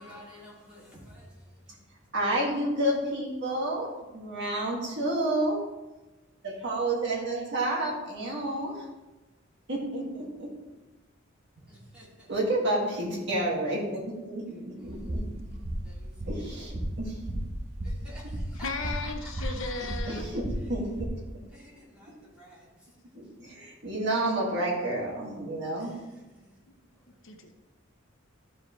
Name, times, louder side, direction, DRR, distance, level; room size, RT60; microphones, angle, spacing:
voice 1, 0.0-1.7 11.6-12.3 14.9-15.1 15.8-16.4 17.8-20.1 21.5-22.7 25.8-26.5 27.1-27.2, equal, 5° right, 2.4 m, -50 dB
voice 2, 2.1-5.6 6.6-8.8 9.7-10.5 12.3-15.3 16.3-17.2 20.1-20.9 23.1-25.9, right 1 dB, 60° right, 2.0 m, -30 dB
sound 1, 14.8-21.1, right 1 dB, 35° right, 1.0 m, -35 dB
voice 3, 18.6-20.3 27.2-27.5, left 3 dB, 65° left, 0.8 m, -35 dB
13.0 x 4.8 x 3.2 m
head